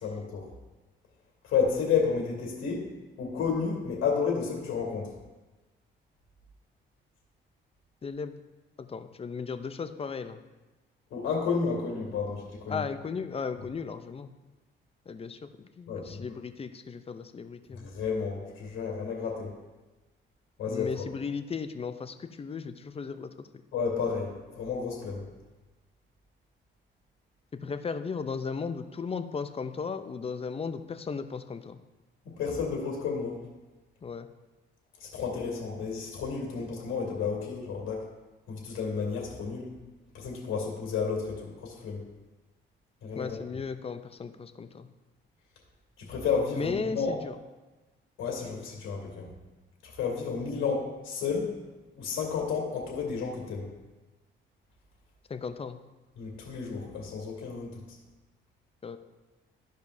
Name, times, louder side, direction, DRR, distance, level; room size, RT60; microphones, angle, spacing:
voice 1, 0.0-0.5 1.4-2.8 3.2-5.1 11.1-12.8 15.9-16.2 17.8-19.5 20.6-21.0 23.7-25.2 32.2-33.4 35.0-38.0 38.5-39.7 40.1-42.0 43.0-43.4 46.1-47.1 48.2-49.3 49.8-51.5 52.0-53.7 56.2-57.8, left 5 dB, 85° left, -3 dB, 2.2 m, -31 dB
voice 2, 8.0-8.3 8.8-10.4 12.7-14.3 15.1-15.4 15.8-17.9 20.7-23.3 27.6-31.8 34.0-34.3 43.2-44.9 46.6-47.3 55.3-55.8 58.8-59.0, left 5 dB, 30° left, 10 dB, 0.5 m, -36 dB
13.5 x 5.2 x 2.7 m, 1.2 s
cardioid pair, 90°, 20 cm